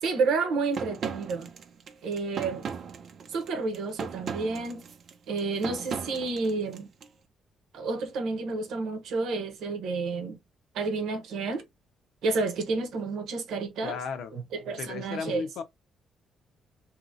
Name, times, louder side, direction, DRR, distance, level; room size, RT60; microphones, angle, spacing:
voice 1, 0.0-1.5 2.0-2.6 3.3-4.9 5.3-6.9 7.7-10.4 10.7-11.6 12.2-14.0 14.3-15.4, right 4 dB, 80° right, 0.9 m, -30 dB
sound 1, 0.7-7.1, right 6 dB, 55° right, 0.5 m, -38 dB
voice 2, 13.8-14.3 14.8-15.6, left 6 dB, 75° left, 0.8 m, -34 dB
2.9 x 2.7 x 2.6 m
cardioid pair, 115°, 0 cm